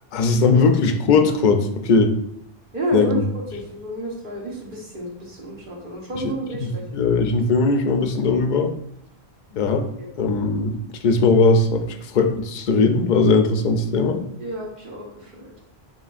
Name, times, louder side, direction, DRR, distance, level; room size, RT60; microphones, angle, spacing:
voice 1, 0.1-2.2 2.9-3.2 6.2-6.3 6.6-8.7 9.6-9.9 10.2-10.8 11.0-14.2, left 4 dB, 55° left, 6 dB, 0.6 m, -19 dB
voice 2, 2.7-3.2 3.5-6.8 9.5-9.6 10.0-10.1 14.4-15.5, right 1 dB, 55° right, -2 dB, 1.4 m, -30 dB
7.0 x 2.9 x 2.5 m, 0.75 s
omnidirectional pair, 1.1 m